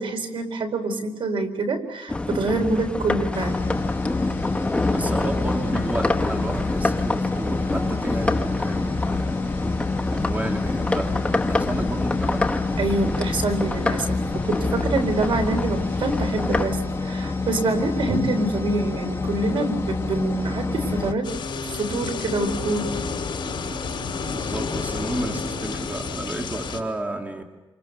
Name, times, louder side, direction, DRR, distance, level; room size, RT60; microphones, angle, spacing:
voice 1, 0.0-3.6 7.7-7.9 12.8-21.3 21.7-22.9, right 2 dB, 70° right, 5 dB, 4.5 m, -26 dB
sound 1, 2.1-16.7, left 2 dB, 10° left, 1.2 m, -27 dB
sound 2, 3.3-21.1, left 3 dB, 30° left, 2.0 m, -28 dB
voice 2, 4.9-9.5 10.1-12.5 24.3-27.4, right 1 dB, 15° right, 2 dB, 2.9 m, -31 dB
sound 3, 21.2-26.8, left 4 dB, 60° left, 5.6 m, -30 dB
29.0 x 28.5 x 6.8 m, 1.1 s
cardioid pair, 110°, 9 cm